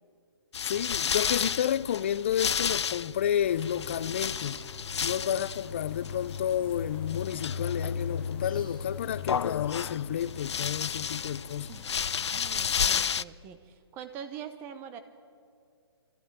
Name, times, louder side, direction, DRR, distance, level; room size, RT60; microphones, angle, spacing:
sound 1, 0.5-13.2, left 7 dB, 90° left, 0.4 m, -32 dB
voice 1, 0.6-4.6 5.0-11.7, left 10 dB, 25° left, 0.4 m, -30 dB
sound 2, 3.4-12.8, left 3 dB, 5° left, 1.8 m, -49 dB
voice 2, 12.3-15.0, right 8 dB, 15° right, 0.9 m, -43 dB
22.0 x 15.0 x 8.9 m
hypercardioid pair, 165°, 14 cm